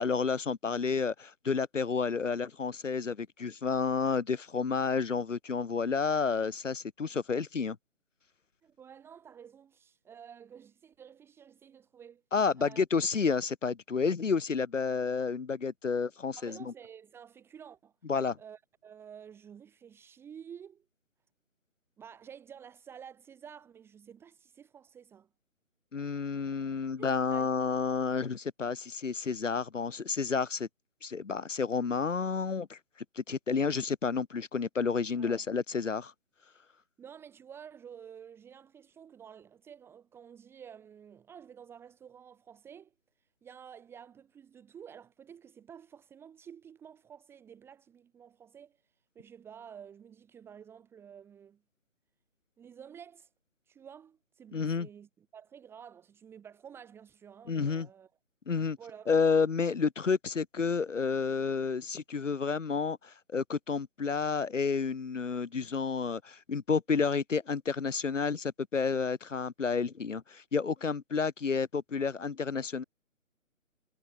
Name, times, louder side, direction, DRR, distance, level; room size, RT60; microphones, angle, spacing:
voice 1, 0.0-7.8 12.3-16.6 18.1-18.4 25.9-30.7 31.0-32.8 33.2-36.1 54.5-54.9 57.5-57.9 58.5-58.8 59.1-72.8, left 5 dB, 65° left, 1.1 m, -30 dB
voice 2, 8.6-12.2 12.6-12.8 16.4-17.9 18.4-20.9 22.0-25.3 26.9-27.6 35.1-35.5 37.0-42.9 43.4-48.8 49.1-51.6 52.6-53.3 53.7-58.1 58.8-59.1, right 8 dB, 5° right, 2.5 m, -51 dB
figure-of-eight pair, 145°, 40 cm